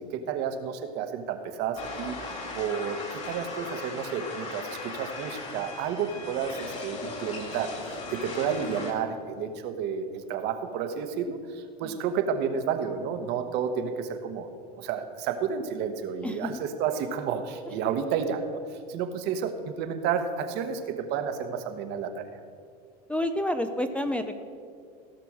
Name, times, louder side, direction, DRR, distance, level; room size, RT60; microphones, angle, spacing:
voice 1, 0.0-14.5 14.8-18.6 18.9-22.3, right 7 dB, 55° right, 7 dB, 1.2 m, -31 dB
sound 1, 1.8-8.9, left 3 dB, 35° left, 2.6 m, -38 dB
voice 2, 23.1-24.4, left 1 dB, 5° left, 8 dB, 0.5 m, -29 dB
16.0 x 6.0 x 6.1 m, 2.2 s
supercardioid pair, 120°, 20 cm